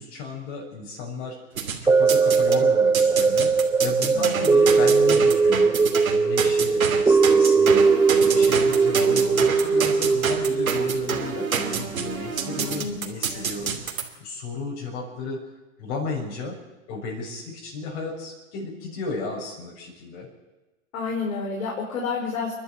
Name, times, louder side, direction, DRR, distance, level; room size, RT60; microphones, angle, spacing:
voice 1, 0.0-1.4 1.8-5.7 6.1-7.9 8.2-15.4 15.8-16.6 16.9-20.3, left 3 dB, 50° left, -2 dB, 6.9 m, -34 dB
sound 1, 1.6-2.6 2.9-14.0, right 6 dB, 85° right, 2.9 m, -28 dB
sound 2, 1.9-12.2 12.7-12.8, right 4 dB, 5° right, 0.6 m, -20 dB
voice 2, 4.1-4.4 7.4-7.8 12.6-12.9 13.3-13.4 20.9-22.5, left 4 dB, 70° left, -1 dB, 5.2 m, -30 dB
29.5 x 11.5 x 8.0 m, 1.1 s
hypercardioid pair, 110°, 41 cm